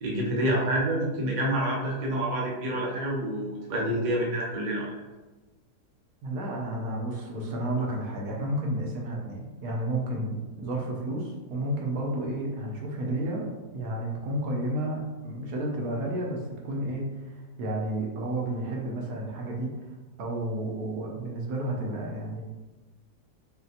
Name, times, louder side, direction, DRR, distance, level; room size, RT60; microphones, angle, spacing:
voice 1, 0.0-5.0, right 1 dB, 45° right, -3 dB, 0.6 m, -28 dB
voice 2, 6.2-19.7 20.2-22.4, right 1 dB, 75° right, -1 dB, 1.3 m, -31 dB
4.1 x 3.2 x 2.7 m, 1.2 s
omnidirectional pair, 1.8 m